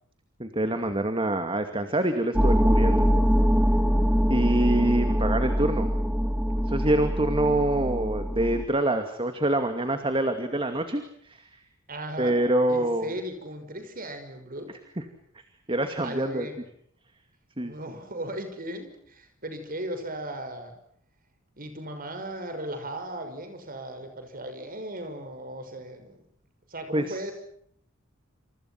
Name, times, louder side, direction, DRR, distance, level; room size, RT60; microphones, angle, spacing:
voice 1, 0.4-3.0 4.3-5.9 6.7-11.6 12.2-13.1 15.7-16.5 17.6-17.7 26.9-27.2, right 1 dB, 25° right, 7 dB, 2.4 m, -26 dB
sound 1, 2.3-8.6, equal, 5° right, 1.8 m, -23 dB
voice 2, 11.9-12.4 12.7-14.8 16.0-16.6 17.6-20.8 21.6-26.2 26.7-27.3, right 1 dB, 40° right, 7 dB, 6.1 m, -37 dB
28.5 x 28.5 x 6.0 m, 0.67 s
head